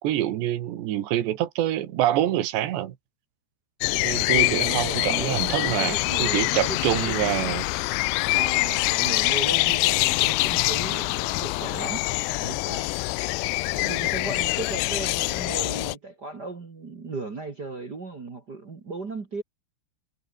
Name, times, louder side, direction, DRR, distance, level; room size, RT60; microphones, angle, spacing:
voice 1, 0.0-3.0 4.0-7.7, right 13 dB, 80° right, 3.8 m, -26 dB
sound 1, 3.8-15.9, left 24 dB, 85° left, 2.5 m, -25 dB
voice 2, 4.3-7.5 8.3-12.9 13.7-19.4, right 3 dB, 35° right, 1.7 m, -36 dB
omnidirectional pair, 5.0 m